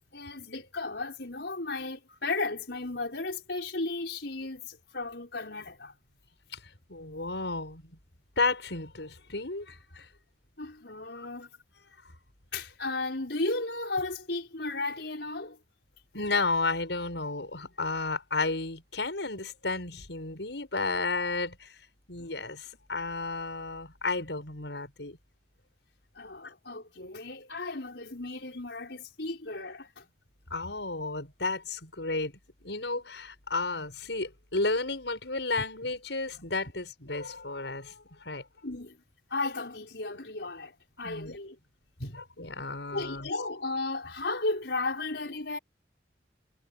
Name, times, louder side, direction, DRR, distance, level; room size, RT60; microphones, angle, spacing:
voice 1, 0.1-5.9 10.6-11.5 12.5-15.6 26.2-30.0 38.6-39.0 39.3-41.6 42.0-42.2 42.9-45.6, left 3 dB, 75° left, 6.0 m, -34 dB
voice 2, 6.9-7.8 8.4-10.1 16.1-21.7 22.1-25.2 26.4-26.5 30.5-32.3 32.6-38.4 41.0-41.4 42.4-43.3, left 3 dB, 90° left, 6.1 m, -32 dB
head